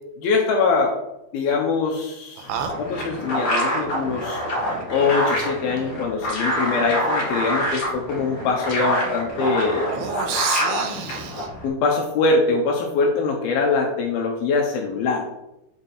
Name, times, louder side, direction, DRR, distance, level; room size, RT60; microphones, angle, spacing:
voice 1, 0.2-1.0 1.3-2.5 2.8-4.4 4.9-9.9 11.6-15.2, left 4 dB, 70° left, 0 dB, 2.5 m, -23 dB
sound 1, 2.4-11.7, equal, 45° left, 1.8 m, -26 dB
voice 2, 2.4-2.7 9.9-11.5, right 7 dB, 75° right, 6 dB, 2.7 m, -29 dB
9.0 x 5.3 x 4.3 m, 0.89 s
omnidirectional pair, 5.1 m